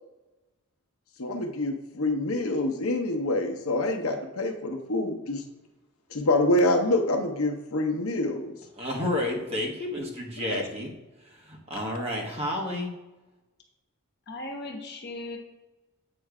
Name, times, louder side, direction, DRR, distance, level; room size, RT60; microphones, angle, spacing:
voice 1, 1.2-5.4 6.1-8.5 10.5-10.6, left 2 dB, 70° left, 3 dB, 0.9 m, -26 dB
voice 2, 8.8-10.9 11.5-12.9, left 1 dB, 30° right, -1 dB, 1.4 m, -30 dB
voice 3, 14.3-15.4, left 2 dB, 50° left, 1 dB, 1.3 m, -37 dB
8.5 x 3.2 x 4.8 m, 1.1 s
head